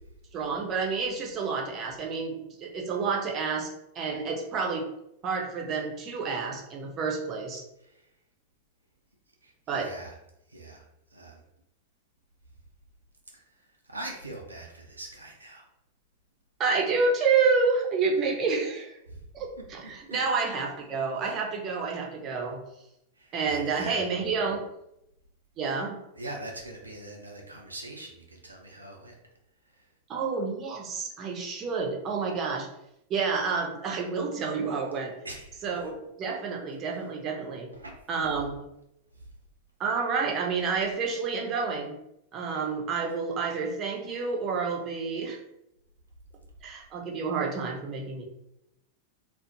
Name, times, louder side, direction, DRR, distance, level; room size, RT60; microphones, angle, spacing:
voice 1, 0.3-4.9 5.2-7.6 9.7-9.9 16.6-19.0 19.3-22.6 23.3-24.6 25.6-26.0 30.1-32.7 33.1-35.1 35.6-37.7 38.1-38.6 39.8-41.9 42.3-45.4 46.6-48.2, right 4 dB, 30° right, 0 dB, 0.6 m, -29 dB
voice 2, 9.4-10.2 10.5-10.8 11.1-11.4 13.3-15.7 19.1-19.3 20.1-20.2 23.1-24.0 26.1-29.2 29.7-29.9 35.2-35.8 37.7-37.9 39.1-39.3, right 1 dB, 80° right, 0 dB, 0.4 m, -42 dB
2.4 x 2.0 x 2.8 m, 0.82 s
figure-of-eight pair, 90°, 0 cm